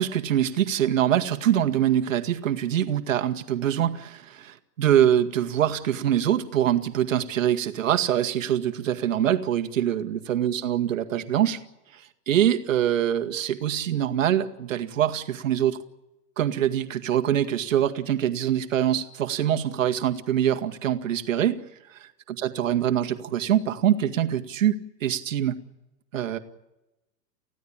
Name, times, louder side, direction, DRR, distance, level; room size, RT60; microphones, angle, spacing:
voice 1, 0.0-11.6 11.9-15.8 16.4-21.6 21.9-22.0 22.4-25.5 26.1-26.4, right 10 dB, 50° right, 8 dB, 2.0 m, -24 dB
29.5 x 16.0 x 8.8 m, 0.98 s
hypercardioid pair, 170°, 49 cm